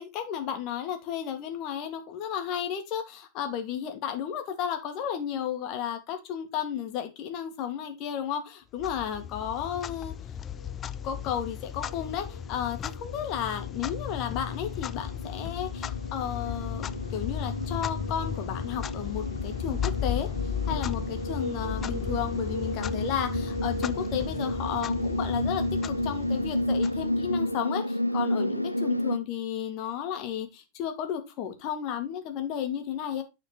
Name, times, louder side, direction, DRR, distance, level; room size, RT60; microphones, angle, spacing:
voice 1, 0.0-10.2 11.0-20.3 20.6-33.2, left 9 dB, 40° left, 6 dB, 2.0 m, -33 dB
Clock, 8.8-27.5, left 8 dB, 25° left, 0.4 m, -35 dB
sound 1, 10.6-10.7 11.1-29.2, left 1 dB, 90° right, 0.5 m, -32 dB
9.4 x 4.4 x 4.5 m, 0.24 s
figure-of-eight pair, 90°, 0 cm